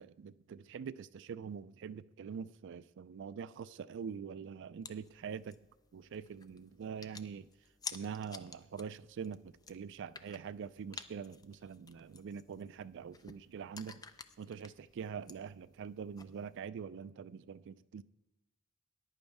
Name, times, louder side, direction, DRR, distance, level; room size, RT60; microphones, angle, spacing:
voice 1, 0.0-5.6 5.9-7.5 7.9-14.1 14.4-18.0, right 6 dB, 60° right, 0.3 m, -44 dB
sound 1, 4.8-16.6, left 5 dB, 20° left, 0.4 m, -52 dB
14.0 x 10.5 x 3.5 m
head